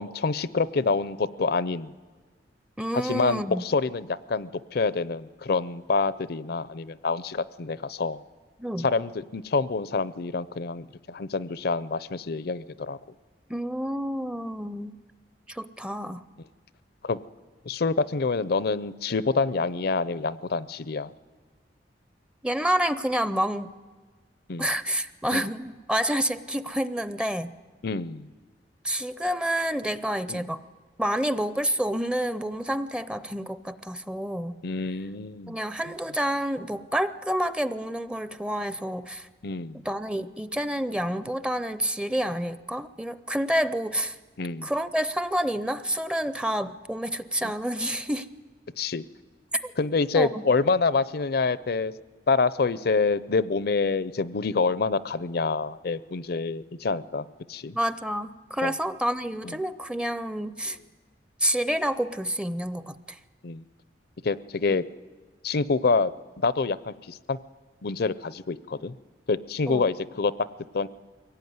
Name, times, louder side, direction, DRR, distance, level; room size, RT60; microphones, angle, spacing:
voice 1, 0.0-1.9 2.9-8.2 8.8-13.0 17.0-17.2 17.7-21.1 24.5-24.7 25.3-25.4 27.8-28.3 30.3-30.4 34.6-35.6 39.4-39.8 44.4-44.7 48.8-49.0 49.8-51.9 52.3-57.8 58.6-58.7 59.4-59.5 63.4-63.6 64.2-64.8 65.4-67.4 67.8-69.0 69.3-70.3 70.7-70.9, left 4 dB, 60° left, 17 dB, 0.6 m, -27 dB
voice 2, 2.8-3.6 8.6-8.9 13.5-15.0 15.5-16.2 22.4-23.7 24.6-27.5 28.8-30.6 31.0-34.6 35.5-39.3 39.8-44.2 44.6-48.3 49.5-49.7 50.1-50.5 57.7-60.8 61.4-63.2 64.7-64.8 69.7-69.9, equal, 5° right, 13 dB, 0.6 m, -28 dB
23.0 x 17.5 x 9.5 m, 1.4 s
head